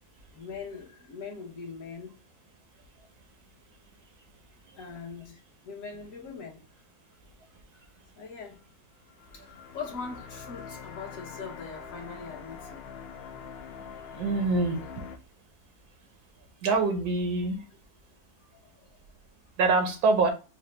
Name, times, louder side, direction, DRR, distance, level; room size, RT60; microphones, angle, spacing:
voice 1, 0.3-2.2 4.7-6.7 7.7-7.8 8.2-8.6 9.3-12.8 18.5-18.9, left 5 dB, 60° left, 1.3 m, -41 dB
sound 1, 9.0-15.2, left 6 dB, 85° left, 0.5 m, -44 dB
voice 2, 14.1-14.8 16.6-17.6 19.6-20.3, right 3 dB, 80° right, 1.4 m, -24 dB
4.8 x 2.1 x 3.2 m
omnidirectional pair, 1.7 m